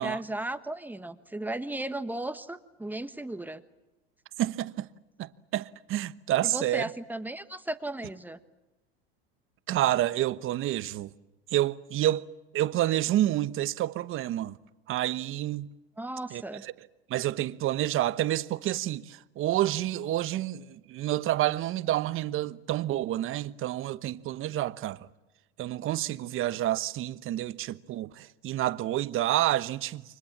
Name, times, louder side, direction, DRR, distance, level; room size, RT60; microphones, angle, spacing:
voice 1, 0.0-3.6 6.4-8.4 16.0-16.7, right 1 dB, 5° right, 1.4 m, -35 dB
voice 2, 4.4-4.9 5.2-6.9 9.7-11.1 11.5-12.3 12.5-14.6 14.9-15.7 16.3-16.7 17.1-25.1 25.6-30.0, right 14 dB, 40° right, 1.1 m, -29 dB
29.5 x 25.0 x 7.4 m
supercardioid pair, 110°, 31 cm